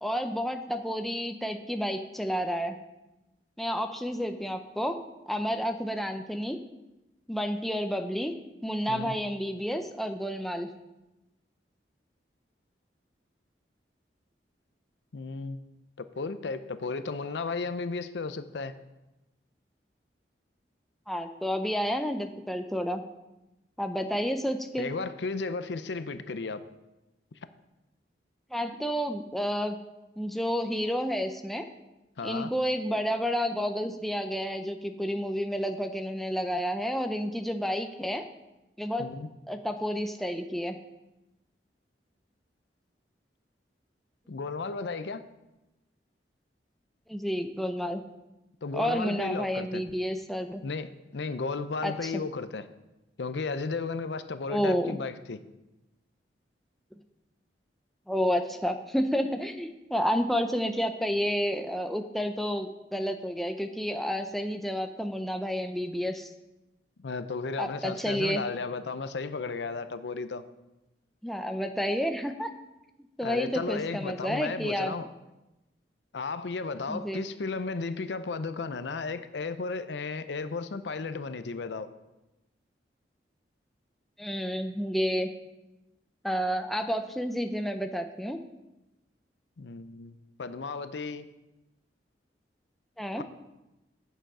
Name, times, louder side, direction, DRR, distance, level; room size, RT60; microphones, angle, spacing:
voice 1, 0.0-2.8 3.6-5.0 5.3-6.6 7.3-8.3 8.6-10.7 21.1-23.0 23.8-24.9 28.5-29.8 30.2-31.7 32.2-38.3 38.8-39.1 39.5-40.8 47.1-48.0 48.7-50.6 51.8-52.1 54.5-55.0 58.1-66.3 67.6-68.4 71.2-72.5 73.2-74.9 76.9-77.2 84.2-85.3 86.2-88.4 93.0-93.2, equal, ahead, 6 dB, 0.5 m, -30 dB
voice 2, 15.1-15.6 16.0-18.7 24.8-26.6 32.2-32.5 39.0-39.3 44.3-45.2 48.6-49.8 50.6-52.7 53.2-55.4 67.0-70.4 73.2-75.1 76.1-81.9 89.6-91.3 93.2-93.3, left 4 dB, 80° left, 12 dB, 0.6 m, -34 dB
9.0 x 6.9 x 5.5 m, 0.98 s
head